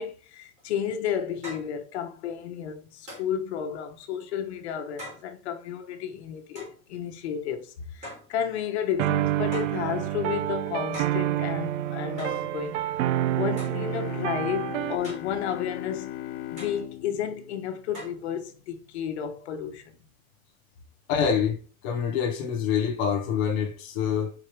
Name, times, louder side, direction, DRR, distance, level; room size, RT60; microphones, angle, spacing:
voice 1, 0.0-12.8 13.4-16.1 16.5-20.0, left 8 dB, 50° left, 1.1 m, -32 dB
sound 1, 0.6-0.7 1.4-1.7 3.1-3.4 5.0-5.3 6.6-6.8 8.0-8.3 9.5-9.8 10.9-11.3 12.2-12.5 13.6-13.8 15.0-15.4 16.6-16.8 17.9-18.2, equal, 15° right, 3.2 m, -41 dB
sound 2, 9.0-15.0, right 13 dB, 60° right, 0.5 m, -28 dB
sound 3, 13.7-18.4, left 13 dB, 90° left, 0.8 m, -38 dB
voice 2, 21.1-24.3, left 7 dB, 20° left, 0.5 m, -26 dB
4.8 x 4.7 x 4.5 m
supercardioid pair, 175°, 42 cm